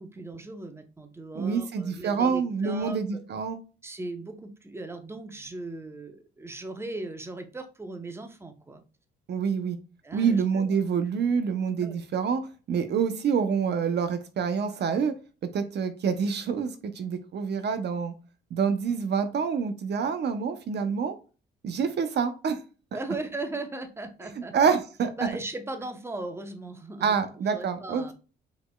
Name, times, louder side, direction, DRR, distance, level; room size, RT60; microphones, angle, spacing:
voice 1, 0.0-3.0 3.8-8.8 10.0-10.7 11.8-12.0 22.9-24.7 25.2-27.2 27.5-28.1, right 2 dB, 10° right, 7 dB, 0.8 m, -38 dB
voice 2, 1.3-3.6 9.3-9.8 10.1-12.4 12.7-15.1 15.5-18.1 18.5-21.1 21.6-22.6 24.5-25.1 27.0-28.1, right 6 dB, 60° right, 9 dB, 0.7 m, -27 dB
5.0 x 4.3 x 2.3 m, 0.34 s
cardioid pair, 90°, 20 cm